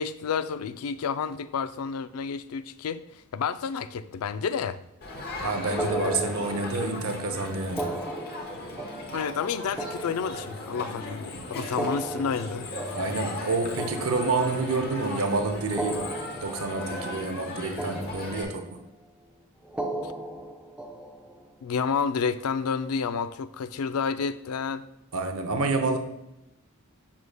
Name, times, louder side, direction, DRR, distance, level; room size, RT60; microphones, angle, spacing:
voice 1, 0.0-3.0 3.3-4.8 9.1-12.8 20.0-20.1 21.6-24.8, left 6 dB, 90° left, 13 dB, 0.4 m, -30 dB
Crowd, 5.0-18.4, left 2 dB, 45° left, 1.1 m, -37 dB
voice 2, 5.4-8.0 12.9-16.1 16.4-18.8 25.1-26.0, right 3 dB, 70° right, 6 dB, 0.7 m, -28 dB
sound 1, 5.8-7.0 7.7-11.0 11.6-14.9 15.6-17.5 17.8-18.8 19.6-21.5, right 1 dB, 5° right, 0.5 m, -37 dB
7.3 x 6.2 x 2.2 m, 0.89 s
head